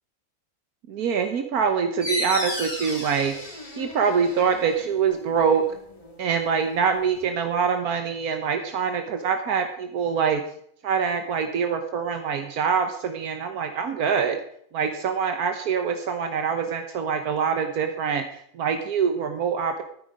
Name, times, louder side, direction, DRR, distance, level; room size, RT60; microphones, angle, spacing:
voice 1, 0.9-3.3 3.8-5.6 6.2-10.4 10.8-14.4 14.7-19.8, right 6 dB, 85° right, 6 dB, 1.5 m, -24 dB
sound 1, 2.0-7.3, left 1 dB, 25° left, 2.2 m, -35 dB
14.5 x 9.2 x 4.9 m, 0.66 s
omnidirectional pair, 1.6 m